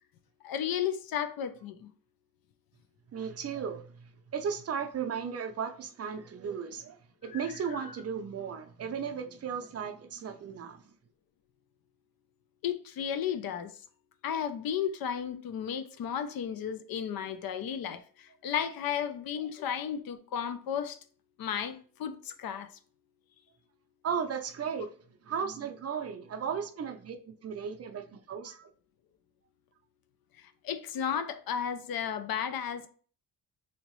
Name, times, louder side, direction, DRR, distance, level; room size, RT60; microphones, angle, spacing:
voice 1, 0.4-1.9 7.3-7.4 7.7-7.9 12.6-13.7 14.2-21.0 21.4-22.7 30.4-32.9, left 8 dB, 65° left, 0.5 m, -34 dB
voice 2, 3.1-7.0 7.2-10.8 24.0-24.9 25.3-28.7, right 7 dB, 40° right, 0.5 m, -35 dB
3.0 x 2.8 x 2.9 m
cardioid pair, 95°, 38 cm